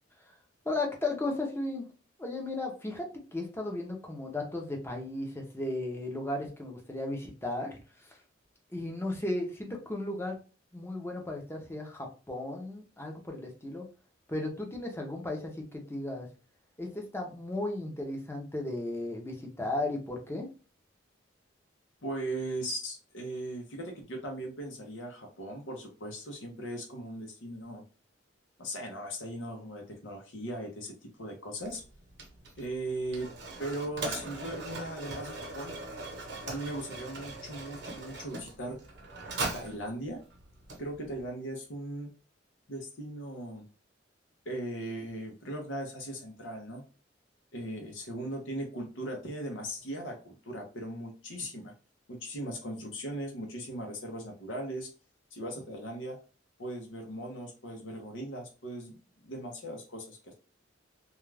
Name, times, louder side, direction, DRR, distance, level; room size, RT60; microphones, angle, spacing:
voice 1, 0.6-1.9 2.2-8.2 8.7-10.4 10.7-13.9 14.3-16.3 16.8-20.5, left 2 dB, 15° left, 2 dB, 0.6 m, -35 dB
voice 2, 22.0-27.8 28.6-31.8 32.6-33.3 33.6-35.7 36.5-38.8 39.5-40.2 40.8-42.1 42.7-43.7 44.5-46.8 47.5-51.7 52.1-54.9 55.3-56.2 56.6-60.3, right 1 dB, 90° left, 1 dB, 0.7 m, -38 dB
Mechanisms, 31.6-41.3, right 3 dB, 60° right, 0.8 m, -41 dB
2.3 x 2.3 x 3.2 m, 0.33 s
head